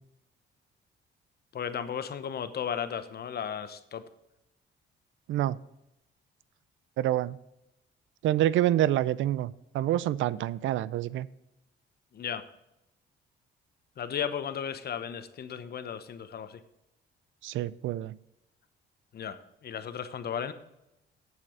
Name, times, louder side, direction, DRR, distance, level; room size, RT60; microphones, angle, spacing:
voice 1, 1.5-4.1 12.1-12.4 14.0-16.6 19.1-20.5, left 8 dB, 55° left, 1.0 m, -35 dB
voice 2, 7.0-7.4 8.2-11.3 17.4-18.2, right 13 dB, 75° right, 0.5 m, -27 dB
8.5 x 7.4 x 6.2 m
cardioid pair, 90°, 20 cm